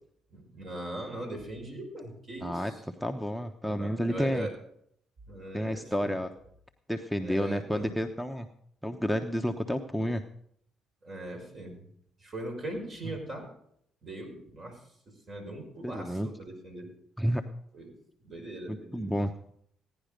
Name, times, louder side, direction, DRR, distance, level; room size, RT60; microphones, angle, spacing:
voice 1, 0.3-2.8 3.8-4.6 5.3-6.2 7.2-8.0 11.0-11.8 12.2-13.5 14.0-14.8 15.3-16.9 17.7-18.0 18.2-19.1, right 1 dB, 50° right, 2 dB, 5.5 m, -40 dB
voice 2, 2.4-2.7 3.0-4.5 5.5-6.3 6.9-8.5 8.8-10.2 15.8-16.3 17.2-17.4 18.7-19.3, equal, ahead, 8 dB, 1.0 m, -30 dB
16.5 x 10.0 x 5.2 m, 0.69 s
supercardioid pair, 60°, 0 cm